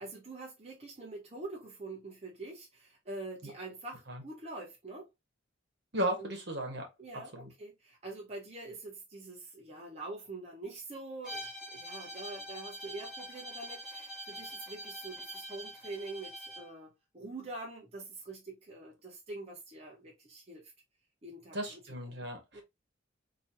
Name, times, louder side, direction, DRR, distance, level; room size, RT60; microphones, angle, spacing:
voice 1, 0.0-5.1 6.2-6.3 7.0-20.7 21.2-22.1 22.5-22.6, right 2 dB, 35° right, 1.0 m, -45 dB
voice 2, 5.9-6.9 7.3-7.5 21.5-22.6, right 1 dB, 60° right, 1.4 m, -35 dB
Bowed string instrument, 11.2-16.7, equal, 5° right, 1.3 m, -44 dB
4.4 x 3.0 x 2.7 m
head